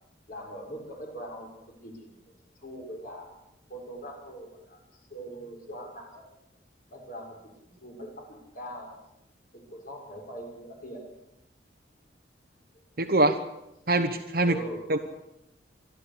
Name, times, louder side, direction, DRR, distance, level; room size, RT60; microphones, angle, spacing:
voice 1, 0.3-1.5 1.8-2.1 2.6-3.3 3.7-6.2 6.9-7.3 7.6-8.9 9.5-11.0 14.4-14.9, right 1 dB, 50° left, 1 dB, 6.3 m, -41 dB
voice 2, 13.0-13.4 13.9-14.6 14.9-15.0, right 2 dB, 55° right, 3 dB, 1.2 m, -23 dB
27.0 x 12.0 x 8.5 m, 0.86 s
head